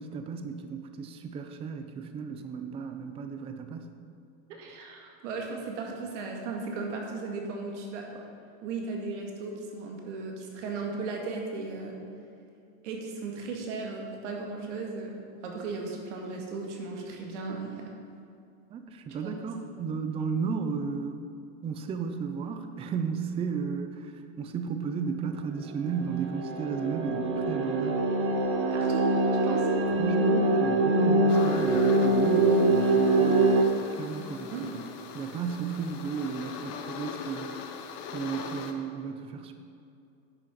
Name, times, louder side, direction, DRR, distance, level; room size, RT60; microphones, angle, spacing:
voice 1, 0.0-3.9 18.7-21.2 21.6-28.1 30.0-33.7 34.0-34.8 35.1-37.7 38.1-39.5, right 6 dB, 15° right, 7 dB, 0.4 m, -34 dB
voice 2, 4.5-8.2 8.6-12.0 12.8-17.8 19.2-19.4 28.7-29.7 34.5-34.7, right 3 dB, 90° right, 0 dB, 2.0 m, -36 dB
sound 1, 25.9-33.6, right 2 dB, 40° right, 1.1 m, -24 dB
sound 2, 31.3-38.7, left 6 dB, 50° left, 0.9 m, -41 dB
9.8 x 6.8 x 5.1 m, 2.5 s
supercardioid pair, 150°, 35 cm